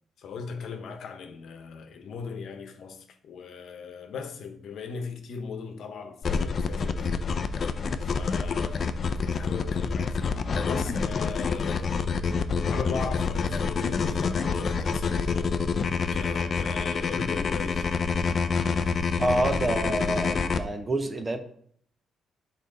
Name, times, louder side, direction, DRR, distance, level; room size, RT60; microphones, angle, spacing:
voice 1, 0.2-7.2 8.1-12.1 12.7-15.6 16.1-18.0, left 5 dB, 65° left, 1.0 m, -38 dB
sound 1, 6.2-20.6, left 5 dB, 45° left, 0.5 m, -27 dB
voice 2, 19.2-21.4, right 2 dB, 20° right, 0.8 m, -27 dB
8.8 x 4.1 x 4.0 m
cardioid pair, 120°, 0 cm